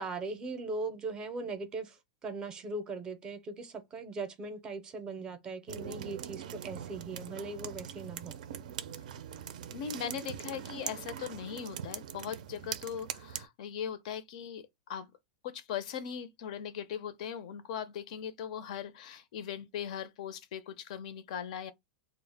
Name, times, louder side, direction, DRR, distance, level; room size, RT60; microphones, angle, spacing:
voice 1, 0.0-8.3, right 3 dB, 20° right, 0.5 m, -39 dB
sound 1, 5.7-13.5, right 9 dB, 75° right, 0.4 m, -42 dB
voice 2, 9.7-15.1 15.4-21.7, left 8 dB, 60° left, 0.4 m, -39 dB
2.1 x 2.0 x 3.2 m
supercardioid pair, 150°, 4 cm